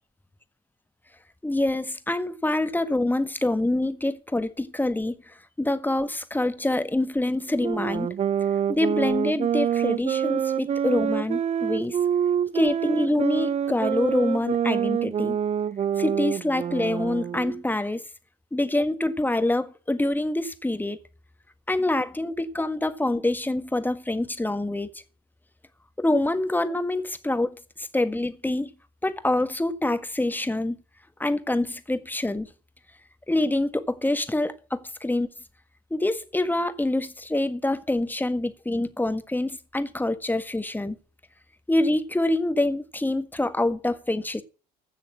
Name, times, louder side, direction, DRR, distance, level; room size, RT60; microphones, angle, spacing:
voice 1, 1.4-8.1 8.7-12.0 12.5-15.4 16.0-18.0 18.5-21.0 21.7-24.9 26.0-28.7 29.0-30.8 31.2-32.5 33.3-35.3 35.9-40.9 41.7-44.4, left 1 dB, 10° left, 1.6 m, -26 dB
sound 1, 7.6-17.6, right 8 dB, 35° right, 0.6 m, -26 dB
15.5 x 6.5 x 7.3 m
hypercardioid pair, 60°, 20 cm